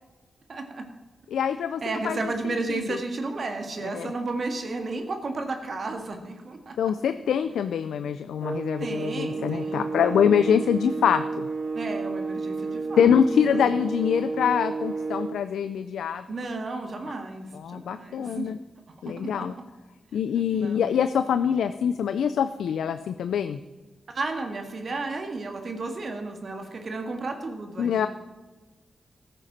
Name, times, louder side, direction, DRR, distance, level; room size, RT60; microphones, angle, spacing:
voice 1, 0.5-0.8 1.8-6.9 8.8-10.3 11.7-13.1 13.5-13.7 16.3-18.5 19.1-19.6 20.5-20.8 24.1-28.1, right 3 dB, 60° right, 4 dB, 1.9 m, -33 dB
voice 2, 1.3-2.2 2.7-3.0 3.9-4.1 6.8-11.5 13.0-16.2 17.5-18.6 19.0-19.5 20.1-23.6 27.8-28.1, left 8 dB, 90° left, 11 dB, 0.4 m, -24 dB
sound 1, 8.4-15.5, right 4 dB, 40° right, 0.8 m, -31 dB
14.5 x 9.0 x 4.2 m, 1.2 s
cardioid pair, 45°, 0 cm